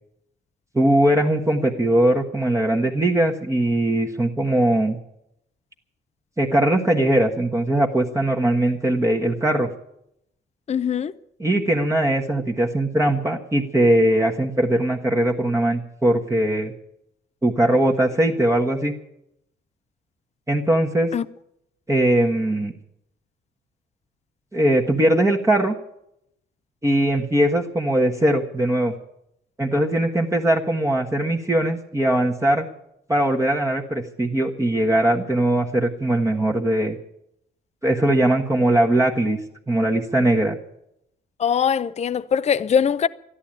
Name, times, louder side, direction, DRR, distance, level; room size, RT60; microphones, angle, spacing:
voice 1, 0.7-5.0 6.4-9.7 11.4-16.7 17.4-18.9 20.5-21.1 21.9-22.7 24.5-25.7 26.8-28.9 29.6-32.6 33.1-37.0 37.8-39.4 39.7-40.6, right 1 dB, 15° right, 1.4 m, -20 dB
voice 2, 10.7-11.1 21.1-21.2 41.4-43.1, left 7 dB, 35° left, 0.5 m, -21 dB
13.0 x 11.5 x 8.9 m
cardioid pair, 90°, 20 cm